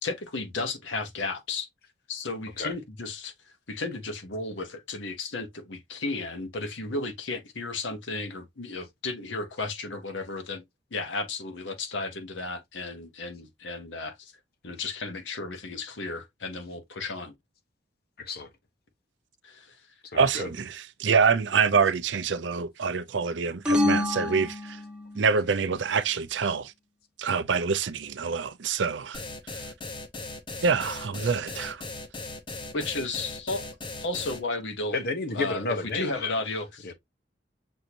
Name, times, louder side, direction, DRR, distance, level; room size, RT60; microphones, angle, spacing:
voice 1, 0.0-1.7 2.1-10.6 10.9-14.3 14.6-17.3 19.4-19.8 26.5-26.6 32.7-33.7 34.0-35.0 35.3-36.9, left 3 dB, 80° left, 1.0 m, -34 dB
voice 2, 18.2-18.5 20.1-20.5 34.9-36.4 36.8-36.9, left 3 dB, 55° left, 1.0 m, -31 dB
voice 3, 20.1-24.8 25.1-26.7 27.2-29.2 30.6-31.8, right 5 dB, 75° right, 0.6 m, -26 dB
sound 1, 23.6-25.3, left 1 dB, 5° right, 1.2 m, -27 dB
sound 2, 29.1-34.4, left 2 dB, 25° left, 0.8 m, -38 dB
6.4 x 2.6 x 2.9 m
head